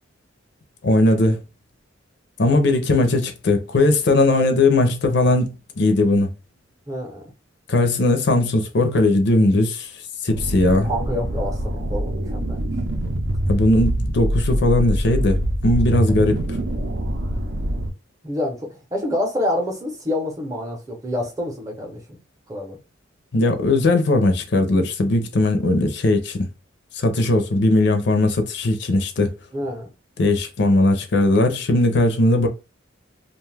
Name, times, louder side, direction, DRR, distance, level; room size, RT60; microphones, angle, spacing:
voice 1, 0.8-1.4 2.4-6.3 7.7-9.9 10.2-10.9 13.5-16.6 23.3-26.5 26.9-29.3 30.2-32.5, left 2 dB, 60° left, 0.5 m, -18 dB
voice 2, 6.9-7.2 10.8-12.6 17.2-17.3 18.2-22.2 22.5-22.8 29.5-29.9, left 1 dB, 15° right, 0.7 m, -27 dB
sound 1, 10.3-17.9, right 1 dB, 60° right, 0.6 m, -24 dB
2.5 x 2.3 x 3.2 m
head